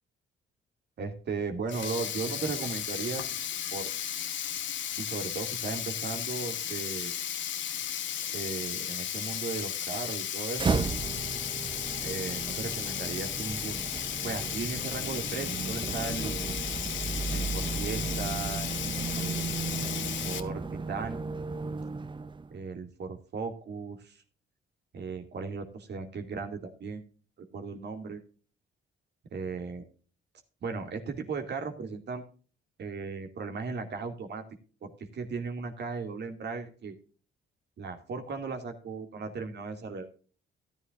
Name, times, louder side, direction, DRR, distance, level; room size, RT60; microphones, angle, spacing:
voice 1, 1.0-3.4 3.7-3.9 5.0-7.1 8.3-10.8 12.0-13.8 14.2-16.4 17.3-18.7 19.2-19.6 20.0-21.4 22.5-24.2 24.9-27.1 27.4-28.2 29.3-29.8 30.6-32.2 32.8-34.4 34.8-36.9 37.8-40.1, right 4 dB, 60° right, 5 dB, 2.4 m, -36 dB
Sink (filling or washing), 1.6-20.4, left 10 dB, 70° left, 1.2 m, -35 dB
sound 1, 10.5-22.5, right 4 dB, 25° right, 0.6 m, -34 dB
14.0 x 11.0 x 2.6 m, 0.39 s
cardioid pair, 90°, 20 cm